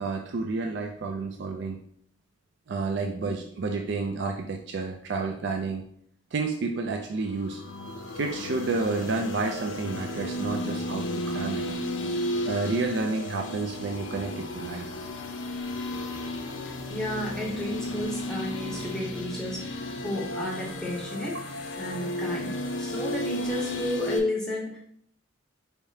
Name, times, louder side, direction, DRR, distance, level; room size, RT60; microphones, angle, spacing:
voice 1, 0.0-1.8 2.7-5.8 6.3-7.6 8.1-11.6 12.4-14.9 21.3-21.4, right 3 dB, 60° right, 3 dB, 0.4 m, -30 dB
sound 1, 7.3-24.2, left 1 dB, 75° left, 0.6 m, -33 dB
voice 2, 16.9-21.4 21.8-24.8, left 1 dB, 5° left, -4 dB, 0.7 m, -32 dB
4.6 x 3.5 x 2.7 m, 0.64 s
head